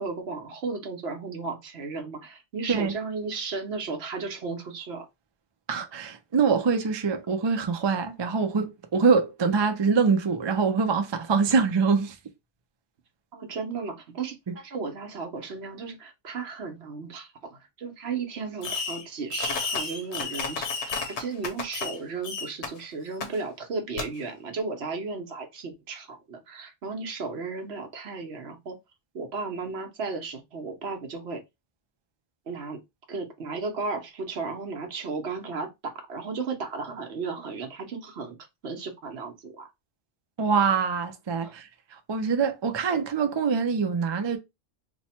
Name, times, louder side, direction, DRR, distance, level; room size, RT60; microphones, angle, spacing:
voice 1, 0.0-5.1 13.3-20.7 21.2-28.8 29.1-31.4 32.5-32.8 33.1-38.4 38.6-39.7 41.4-41.5, right 4 dB, 65° right, 1.1 m, -34 dB
voice 2, 5.7-12.1 14.5-14.6 40.4-41.7 42.1-44.4, right 5 dB, 45° right, 0.3 m, -24 dB
Fireworks, 18.6-19.0 19.3-22.0 22.2-22.7 23.2-23.3 24.0-24.1, left 5 dB, 75° left, 1.1 m, -31 dB
3.1 x 2.1 x 4.2 m
omnidirectional pair, 1.2 m